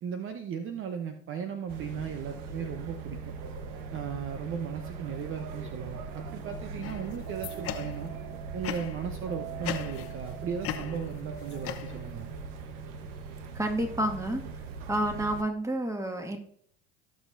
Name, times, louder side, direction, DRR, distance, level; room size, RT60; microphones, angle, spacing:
voice 1, 0.0-3.3 3.9-8.1 8.5-12.3, right 7 dB, 40° right, 7 dB, 0.9 m, -36 dB
sound 1, 1.7-15.4, right 4 dB, 65° right, 1.2 m, -40 dB
sound 2, 6.5-11.7, right 11 dB, 85° right, 1.4 m, -46 dB
sound 3, 6.8-8.2 8.6-9.1 9.6-10.3 10.6-12.3, left 11 dB, 45° left, 0.9 m, -38 dB
voice 2, 13.5-14.6 14.9-16.4, right 1 dB, 10° right, 4 dB, 2.0 m, -30 dB
18.0 x 6.3 x 2.7 m, 0.62 s
hypercardioid pair, 80°, 32 cm